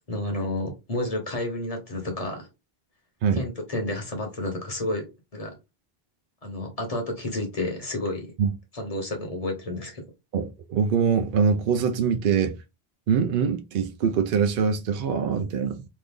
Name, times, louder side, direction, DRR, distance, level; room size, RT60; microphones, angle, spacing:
voice 1, 0.1-2.5 3.4-5.5 6.4-8.3 8.7-10.0, left 1 dB, 35° left, 1.1 m, -30 dB
voice 2, 10.3-12.6 13.1-15.9, right 6 dB, 65° right, 0.7 m, -23 dB
3.2 x 2.5 x 3.5 m
omnidirectional pair, 1.0 m